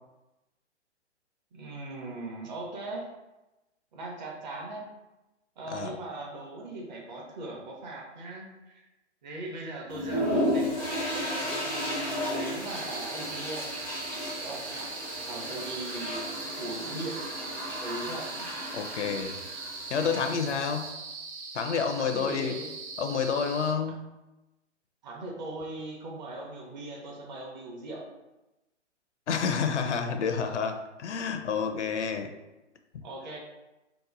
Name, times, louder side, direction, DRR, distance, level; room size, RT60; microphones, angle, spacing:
voice 1, 1.5-3.1 3.9-4.9 5.6-8.9 9.2-10.7 11.4-13.7 14.4-17.2 17.8-18.3 22.0-22.7 25.0-28.1 33.0-33.4, right 2 dB, 40° right, -1 dB, 0.8 m, -39 dB
sound 1, 9.9-20.9, equal, 10° right, 0.3 m, -34 dB
sound 2, 12.6-23.7, right 4 dB, 75° right, 0.7 m, -41 dB
voice 2, 18.7-19.4 19.9-20.9 21.5-22.6 23.0-24.1 29.3-32.3, left 6 dB, 75° left, 6 dB, 0.5 m, -29 dB
2.9 x 2.1 x 3.7 m, 1.0 s
hypercardioid pair, 135°, 35 cm